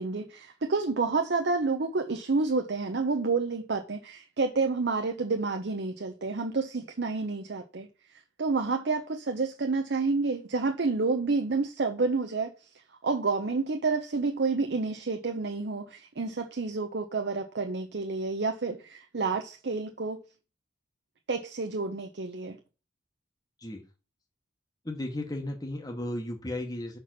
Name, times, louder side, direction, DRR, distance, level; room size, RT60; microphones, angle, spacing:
voice 1, 0.0-7.9 8.4-12.5 13.0-20.2 21.3-22.6, right 4 dB, 60° right, 0.7 m, -29 dB
voice 2, 24.8-27.0, left 1 dB, 20° left, 1.0 m, -35 dB
5.9 x 4.5 x 5.9 m
head